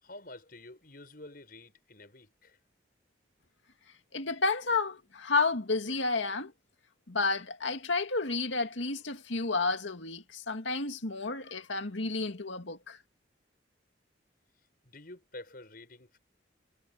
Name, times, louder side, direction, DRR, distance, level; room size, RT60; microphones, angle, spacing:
voice 1, 0.0-2.6 14.8-16.2, left 2 dB, 50° left, 7.0 m, -49 dB
voice 2, 4.1-6.5 7.1-13.0, left 3 dB, 80° left, 2.2 m, -31 dB
head